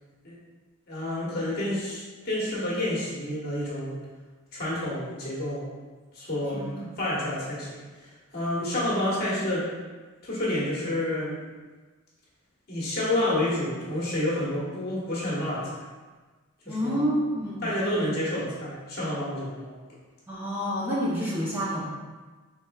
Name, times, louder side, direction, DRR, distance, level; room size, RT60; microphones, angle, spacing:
voice 1, 0.9-4.0 4.5-5.7 6.1-6.7 7.0-9.7 10.2-11.5 12.7-15.8 16.6-17.0 17.6-19.7, left 1 dB, 45° left, -7 dB, 1.2 m, -29 dB
voice 2, 6.5-6.9 16.7-17.7 20.3-21.8, equal, 10° right, -8 dB, 0.7 m, -28 dB
4.6 x 3.4 x 2.3 m, 1.3 s
head